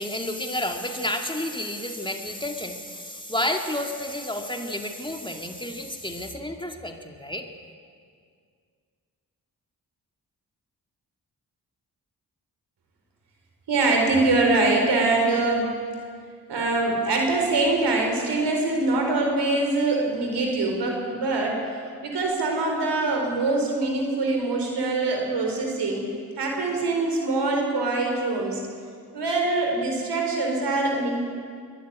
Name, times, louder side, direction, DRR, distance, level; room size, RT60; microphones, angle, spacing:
voice 1, 0.0-7.5, left 1 dB, 10° left, 3 dB, 2.4 m, -30 dB
voice 2, 13.7-15.7 16.5-21.6 22.0-26.0 26.4-28.6 29.1-31.2, right 2 dB, 80° right, 2 dB, 4.4 m, -23 dB
22.5 x 12.0 x 9.6 m, 2.1 s
supercardioid pair, 45°, 40 cm